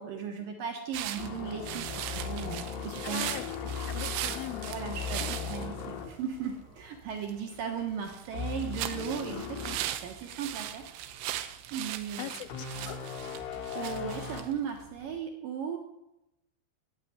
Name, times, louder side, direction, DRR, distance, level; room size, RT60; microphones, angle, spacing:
voice 1, 0.0-3.3 4.7-10.8 11.7-12.3 13.4-15.8, right 7 dB, 70° right, 2.3 m, -37 dB
sound 1, 0.9-15.2, right 12 dB, 85° right, 3.3 m, -39 dB
sound 2, 1.2-7.3 7.5-7.8 8.3-9.8 10.3-10.4 12.5-14.4, left 6 dB, 65° left, 3.0 m, -38 dB
voice 2, 3.0-5.4 12.2-13.1, left 14 dB, 85° left, 3.2 m, -42 dB
12.0 x 9.1 x 9.9 m
omnidirectional pair, 5.4 m